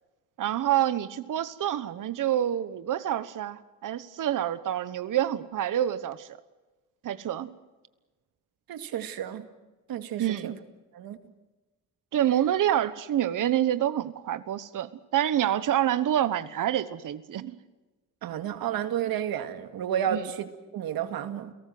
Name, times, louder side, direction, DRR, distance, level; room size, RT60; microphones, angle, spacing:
voice 1, 0.4-6.4 7.0-7.5 10.2-10.5 12.1-17.6 20.1-20.2, right 11 dB, 60° right, 14 dB, 1.2 m, -27 dB
voice 2, 8.7-9.5 9.9-10.6 10.9-11.2 18.2-21.5, right 9 dB, 90° right, 9 dB, 2.3 m, -31 dB
29.5 x 18.5 x 7.8 m, 1.2 s
cardioid pair, 140°, 35 cm